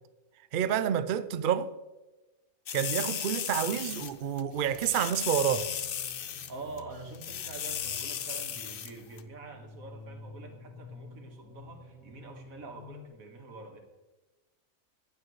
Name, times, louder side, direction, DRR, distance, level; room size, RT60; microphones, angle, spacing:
voice 1, 0.5-1.7 2.7-5.7, right 9 dB, 65° right, 0.5 m, -29 dB
sound 1, 2.7-4.1 4.4-4.5 4.7-6.5 6.8-6.9 7.1-8.9 9.2-9.3, left 9 dB, 55° left, 0.7 m, -35 dB
sound 2, 3.2-13.0, left 2 dB, 90° left, 2.0 m, -51 dB
voice 2, 6.5-13.8, right 3 dB, 80° right, 1.9 m, -45 dB
15.5 x 10.0 x 3.1 m
omnidirectional pair, 1.4 m